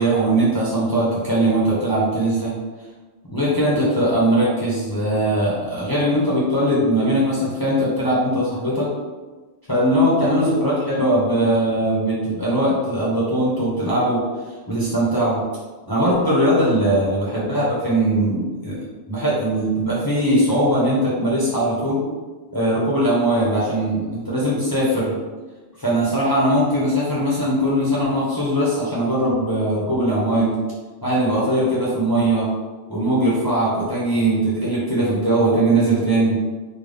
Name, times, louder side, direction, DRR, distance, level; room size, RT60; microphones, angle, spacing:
voice 1, 0.0-2.5 3.3-8.9 9.7-14.2 14.7-15.4 15.9-18.8 19.1-22.0 22.5-25.2 25.8-30.6 31.0-32.5 32.9-36.4, right 1 dB, 20° left, -8 dB, 0.9 m, -20 dB
3.7 x 2.3 x 3.4 m, 1.3 s
omnidirectional pair, 1.2 m